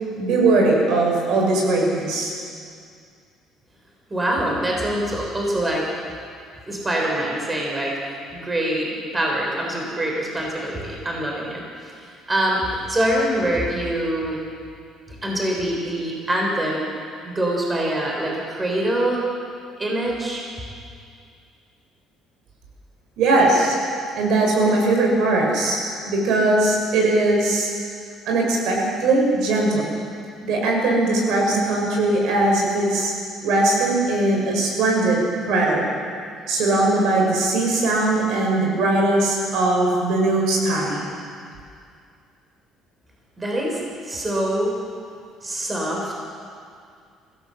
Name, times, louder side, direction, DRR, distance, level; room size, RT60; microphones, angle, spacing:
voice 1, 0.1-2.3 23.2-23.7 24.2-27.7 28.3-29.9 30.4-33.1 33.4-35.2 35.4-35.9 36.5-41.0, right 2 dB, 70° right, 0 dB, 6.1 m, -20 dB
voice 2, 4.1-5.8 6.7-14.4 15.2-16.8 17.2-19.2 19.8-20.4 43.4-44.7 45.4-46.1, right 1 dB, 15° right, -1 dB, 3.8 m, -24 dB
24.5 x 16.5 x 7.7 m, 2.3 s
cardioid pair, 155°, 0 cm